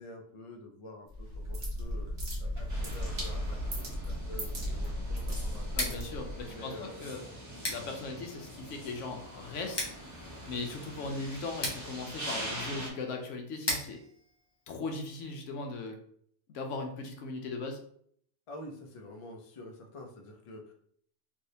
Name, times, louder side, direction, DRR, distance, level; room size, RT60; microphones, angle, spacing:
voice 1, 0.0-2.1 2.4-5.9 6.4-7.1 18.5-20.7, left 1 dB, 45° left, 2 dB, 0.4 m, -48 dB
sound 1, 1.1-6.5, equal, 60° right, 1.3 m, -35 dB
sound 2, 2.7-12.9, right 1 dB, 20° right, 0.6 m, -44 dB
Scissors, 5.6-15.4, left 1 dB, 25° left, 0.8 m, -41 dB
voice 2, 5.8-7.2 7.7-9.9 10.5-14.0 14.7-15.9 16.5-17.8, left 3 dB, 90° left, 4 dB, 1.0 m, -38 dB
3.2 x 2.6 x 2.7 m, 0.62 s
omnidirectional pair, 1.2 m